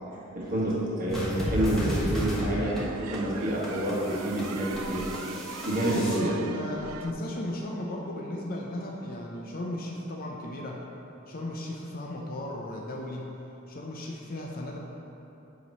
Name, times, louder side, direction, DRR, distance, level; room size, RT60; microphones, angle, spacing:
voice 1, 0.3-5.0 5.6-6.3, right 1 dB, 45° right, -5 dB, 1.3 m, -28 dB
sound 1, 1.1-6.2, equal, ahead, 1.2 m, -33 dB
sound 2, 2.1-7.1, right 7 dB, 85° right, 0.3 m, -41 dB
voice 2, 5.9-10.8 11.3-13.3 13.7-14.8, left 1 dB, 45° left, -2 dB, 0.5 m, -35 dB
8.3 x 3.1 x 5.3 m, 3.0 s
head